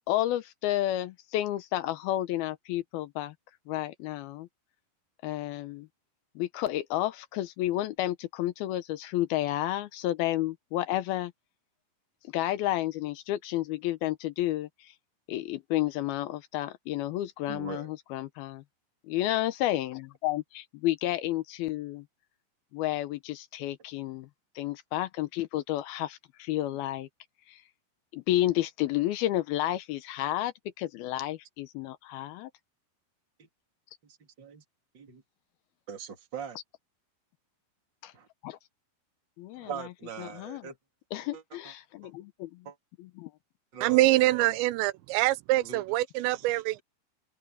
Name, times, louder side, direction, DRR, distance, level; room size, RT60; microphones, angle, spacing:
voice 1, 0.1-3.3 3.7-4.5 5.2-5.9 6.4-11.3 12.3-14.9 15.3-18.6 19.0-22.1 22.7-24.3 24.6-27.1 27.5-27.6 28.1-32.5 38.0-38.1 38.4-38.6 39.4-39.7 40.2-40.7 41.1-42.7 43.0-43.3, left 14 dB, 80° left, 2.3 m, -31 dB
voice 2, 17.5-17.9 33.4-33.5 34.0-34.6 34.9-35.2 35.9-36.6 38.1-38.3 39.5-40.8 41.3-41.4 42.0-42.1 42.6-42.7 43.7-44.6 45.6-45.8, right 7 dB, 30° right, 3.0 m, -41 dB
voice 3, 43.8-46.8, right 18 dB, 90° right, 2.9 m, -25 dB
omnidirectional pair, 5.1 m